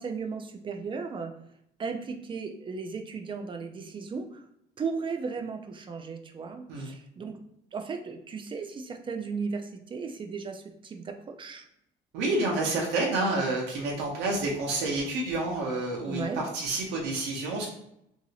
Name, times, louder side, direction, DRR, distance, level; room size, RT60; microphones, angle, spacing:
voice 1, 0.0-1.3 1.8-4.4 4.8-7.4 7.7-11.7 16.1-16.5, right 5 dB, 30° right, 6 dB, 0.4 m, -36 dB
voice 2, 12.1-17.7, right 2 dB, 90° right, -2 dB, 0.8 m, -29 dB
2.8 x 2.7 x 2.8 m, 0.77 s
cardioid pair, 110°, 17 cm